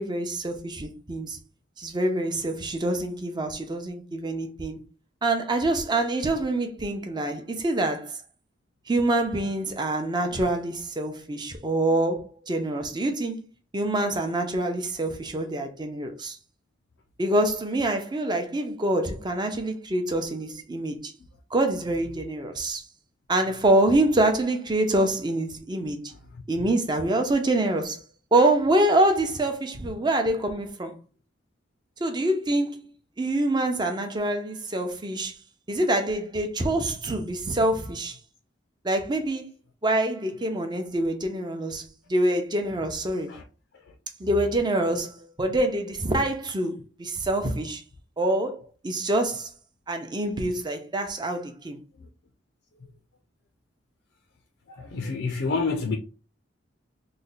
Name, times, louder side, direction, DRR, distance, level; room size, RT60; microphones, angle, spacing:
voice 1, 0.0-1.4 1.8-4.8 5.2-8.1 8.9-13.4 13.7-16.4 17.2-21.1 21.5-22.8 23.3-26.1 26.5-28.0 28.3-31.0 32.0-32.9 33.2-35.3 35.7-38.2 38.8-39.5 39.8-43.3 44.2-47.8 48.2-49.5 49.9-51.8, right 1 dB, 25° right, 0.6 m, -26 dB
voice 2, 54.7-56.0, left 4 dB, 70° left, 0.5 m, -28 dB
3.2 x 2.2 x 3.9 m
head